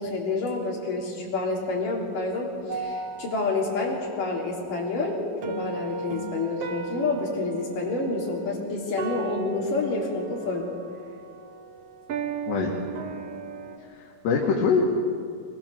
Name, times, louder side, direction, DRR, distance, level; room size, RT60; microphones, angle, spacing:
voice 1, 0.0-10.7, left 3 dB, 55° left, -2 dB, 4.9 m, -28 dB
sound 1, 2.7-13.8, right 4 dB, 65° right, 1.5 m, -36 dB
voice 2, 12.5-12.8 13.9-14.8, left 5 dB, 85° left, -2 dB, 4.1 m, -24 dB
25.0 x 22.0 x 6.9 m, 2.3 s
omnidirectional pair, 4.7 m